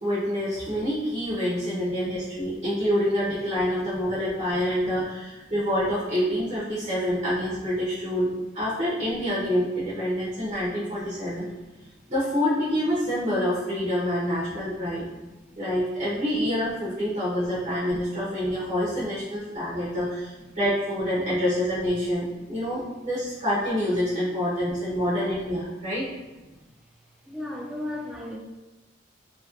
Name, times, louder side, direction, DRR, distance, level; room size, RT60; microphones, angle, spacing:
voice 1, 0.0-11.5 12.1-15.0 15.6-26.1, equal, 35° right, -9 dB, 0.9 m, -27 dB
voice 2, 11.5-12.1 15.3-15.6 18.1-18.2 18.5-18.6 19.3-19.7 25.8-25.9 26.5-26.7 27.3-28.4, left 1 dB, 5° right, -2 dB, 0.3 m, -38 dB
3.0 x 2.9 x 2.5 m, 1.1 s
head